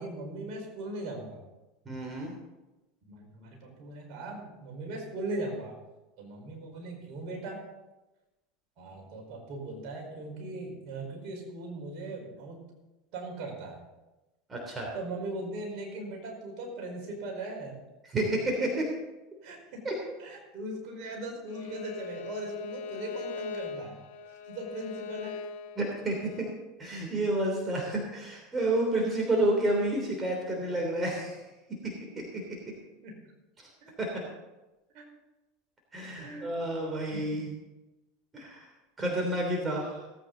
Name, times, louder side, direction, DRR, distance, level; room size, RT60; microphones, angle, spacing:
voice 1, 0.0-1.4 3.1-5.7 6.2-7.6 8.8-12.6 13.1-13.8 14.9-17.8 19.4-19.8 20.2-24.0 24.5-25.3 27.9-28.0 33.0-33.2 33.8-33.9 34.9-35.0 36.2-36.5 37.1-37.4 39.5-39.8, right 2 dB, 55° right, 0 dB, 4.7 m, -39 dB
voice 2, 1.8-2.3 14.5-14.9 18.1-18.9 19.8-19.9 25.8-26.5 26.8-31.4 32.1-32.4 34.0-34.1 35.9-37.5 38.3-38.7 39.0-39.9, right 1 dB, 25° right, 0 dB, 3.3 m, -30 dB
Bowed string instrument, 21.5-26.5, left 5 dB, 75° left, 2.1 m, -41 dB
17.5 x 9.0 x 4.0 m, 1.1 s
hypercardioid pair, 85°, 0 cm